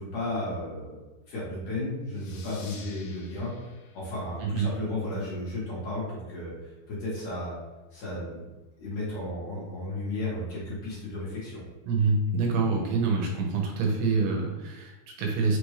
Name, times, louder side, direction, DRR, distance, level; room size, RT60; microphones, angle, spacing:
voice 1, 0.0-3.5 3.9-6.5 6.9-7.6 7.9-8.4 8.8-11.6, left 2 dB, 60° left, -8 dB, 1.9 m, -34 dB
sound 1, 2.1-5.4, left 5 dB, 80° left, 2.6 m, -51 dB
voice 2, 11.9-15.6, right 4 dB, 80° right, 0 dB, 2.7 m, -26 dB
6.1 x 2.5 x 3.2 m, 1.2 s
omnidirectional pair, 4.7 m